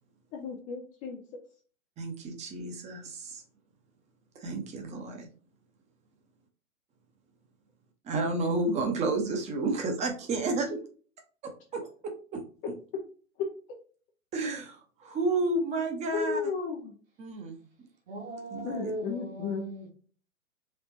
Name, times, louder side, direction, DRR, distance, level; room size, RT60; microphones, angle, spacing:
voice 1, 0.3-1.2 10.6-10.8 13.4-13.5 16.1-16.9 18.6-19.6, left 5 dB, 20° left, 0.5 m, -34 dB
voice 2, 2.0-3.4 4.4-5.3 8.1-10.7 11.7-11.8 12.3-12.4 14.3-16.4 17.2-17.6 18.5-18.9, right 2 dB, 15° right, 0.9 m, -31 dB
voice 3, 18.1-19.9, right 1 dB, 45° right, 1.5 m, -38 dB
4.4 x 3.4 x 2.7 m
figure-of-eight pair, 115°, 40 cm